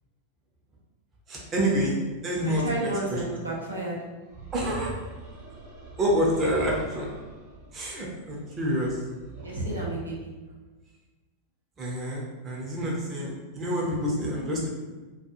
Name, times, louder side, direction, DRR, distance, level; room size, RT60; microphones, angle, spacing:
voice 1, 1.3-2.0 2.2-3.2 4.5-4.9 6.0-7.1 7.7-9.0 11.8-14.7, equal, 25° right, -3 dB, 0.6 m, -27 dB
voice 2, 2.4-4.0 9.4-10.3, right 2 dB, 80° right, -5 dB, 0.6 m, -31 dB
sound 1, 4.3-9.8, right 3 dB, 50° right, 1.1 m, -42 dB
2.4 x 2.2 x 2.8 m, 1.2 s
figure-of-eight pair, 90°, 0 cm